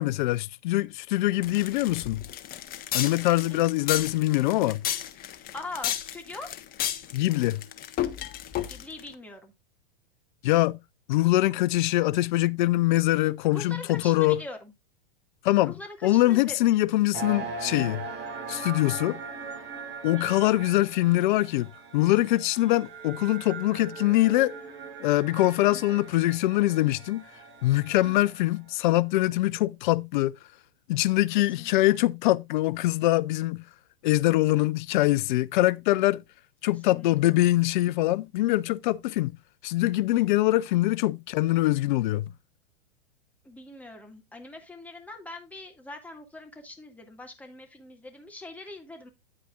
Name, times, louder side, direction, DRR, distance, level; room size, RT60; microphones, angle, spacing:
voice 1, 0.0-2.2 2.9-4.8 7.1-7.6 10.4-10.8 11.1-14.4 15.4-15.7 16.0-18.1 18.5-19.2 20.0-21.7 21.9-24.5 25.0-27.2 27.6-30.3 30.9-33.6 34.0-36.2 36.6-39.3 39.6-42.3, left 17 dB, 55° left, 0.6 m, -23 dB
sound 1, 1.4-9.1, left 11 dB, 30° left, 1.1 m, -33 dB
voice 2, 5.5-6.5 8.7-9.5 13.5-14.7 15.6-16.6 20.1-20.3 25.7-26.0 28.0-28.3 31.3-32.0 36.6-37.3 43.4-49.1, left 2 dB, 5° left, 2.0 m, -42 dB
sound 2, 17.1-28.5, right 4 dB, 35° right, 4.1 m, -40 dB
9.7 x 9.0 x 2.4 m
hypercardioid pair, 110°, 30 cm